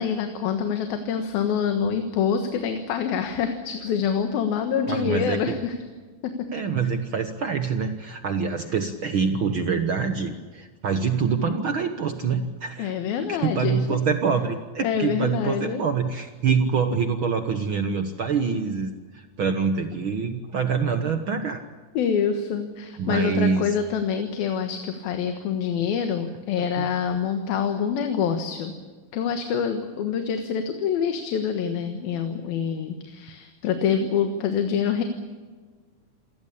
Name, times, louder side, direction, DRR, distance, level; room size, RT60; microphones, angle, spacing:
voice 1, 0.0-5.8 6.2-6.3 12.8-14.0 14.8-15.9 22.0-28.7 29.1-35.0, left 7 dB, 85° left, 7 dB, 3.3 m, -26 dB
voice 2, 4.9-5.4 6.5-12.9 13.3-21.6 23.0-23.7 26.6-26.9, right 5 dB, 75° right, 8 dB, 1.1 m, -25 dB
27.5 x 17.5 x 8.6 m, 1.4 s
omnidirectional pair, 4.2 m